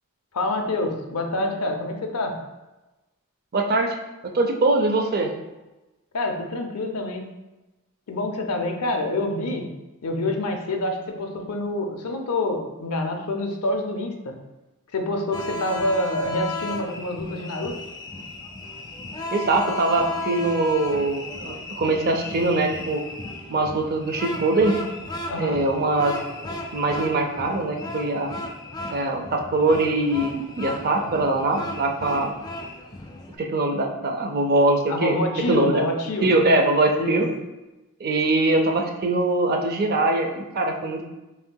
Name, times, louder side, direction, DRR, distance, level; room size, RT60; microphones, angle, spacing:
voice 1, 0.3-2.4 6.1-7.3 8.1-9.7 10.0-14.3 14.9-17.8 25.3-25.6 34.9-36.3 36.9-37.2, left 2 dB, 90° left, 3 dB, 0.6 m, -27 dB
voice 2, 3.5-4.0 4.3-5.3 19.3-23.0 23.5-24.8 25.4-28.3 28.9-32.3 33.4-35.2 35.5-35.9 36.2-37.3 38.0-41.0, right 2 dB, 45° right, 3 dB, 0.5 m, -22 dB
sound 1, 15.3-33.4, left 2 dB, 20° left, 0.3 m, -35 dB
5.6 x 2.7 x 2.2 m, 1.0 s
head